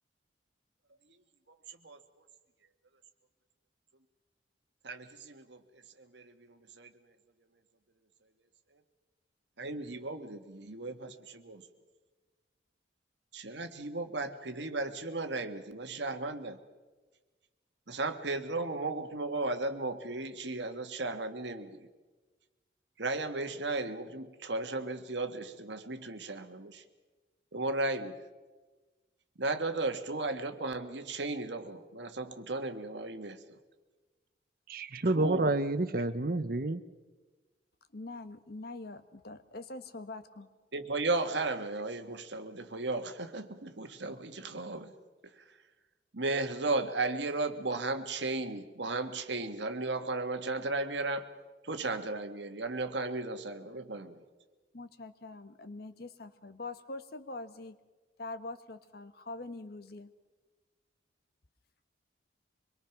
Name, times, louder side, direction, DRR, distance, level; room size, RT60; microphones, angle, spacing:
voice 1, 1.5-2.0 4.8-5.6 6.0-7.1 9.6-11.7 13.3-16.6 17.9-21.9 23.0-26.8 27.5-28.2 29.4-33.4 35.1-35.6 35.9-36.0 40.7-44.9 45.2-45.6 46.1-51.3 51.6-54.2, right 2 dB, 70° right, 7 dB, 1.6 m, -35 dB
voice 2, 34.7-36.8, right 2 dB, 50° right, 12 dB, 0.9 m, -29 dB
voice 3, 37.9-40.5 54.7-57.8 58.2-60.1, left 2 dB, 55° left, 11 dB, 1.2 m, -44 dB
25.0 x 22.0 x 6.0 m, 1.3 s
head